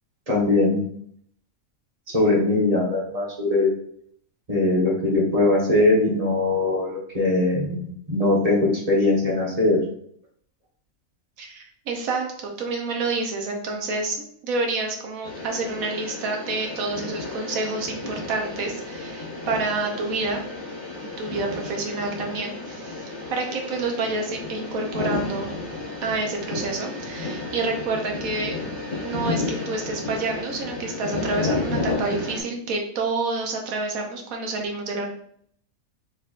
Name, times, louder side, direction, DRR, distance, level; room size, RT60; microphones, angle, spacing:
voice 1, 0.3-0.8 2.1-3.7 4.5-9.8, left 2 dB, 30° right, -4 dB, 1.2 m, -21 dB
voice 2, 11.4-20.4 21.0-23.0 23.3-25.5 26.0-28.6 29.0-35.1, right 3 dB, 85° right, 2 dB, 1.2 m, -28 dB
sound 1, 15.2-32.4, left 2 dB, 35° left, 1.8 m, -32 dB
4.0 x 3.4 x 2.5 m, 0.64 s
omnidirectional pair, 1.4 m